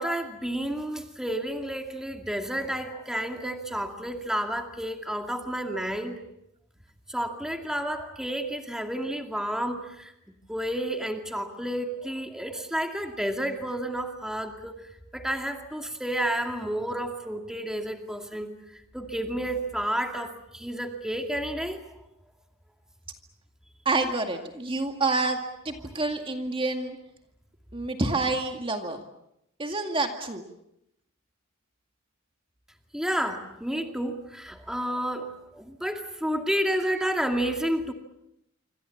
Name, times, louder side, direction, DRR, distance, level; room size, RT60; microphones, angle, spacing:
voice 1, 0.0-6.2 7.1-10.1 10.5-14.8 15.1-18.5 18.9-21.8 32.9-37.9, right 1 dB, 5° right, 4 dB, 2.3 m, -30 dB
voice 2, 23.9-27.0 27.7-29.0 29.6-30.4, right 3 dB, 25° right, 5 dB, 2.1 m, -28 dB
27.0 x 26.0 x 7.2 m, 0.81 s
head